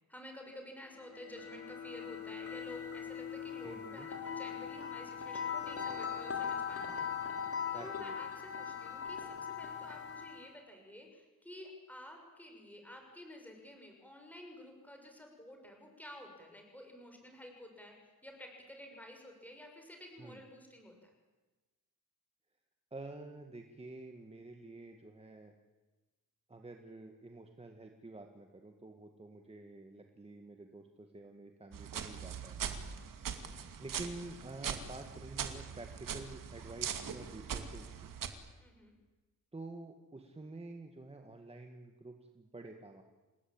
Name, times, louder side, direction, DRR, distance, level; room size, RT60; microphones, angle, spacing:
voice 1, 0.0-21.1 33.2-33.6 38.6-38.9, left 1 dB, 5° left, 3 dB, 6.1 m, -51 dB
sound 1, 1.0-10.5, left 7 dB, 45° left, 3.5 m, -40 dB
voice 2, 3.6-4.1 7.7-8.2 20.2-20.4 22.9-25.5 26.5-32.6 33.8-38.1 39.5-43.0, right 2 dB, 20° right, 4 dB, 1.9 m, -49 dB
sound 2, 31.7-38.3, right 7 dB, 85° right, 2.4 m, -41 dB
28.5 x 19.5 x 8.9 m, 1.2 s
wide cardioid pair, 130°, 32 cm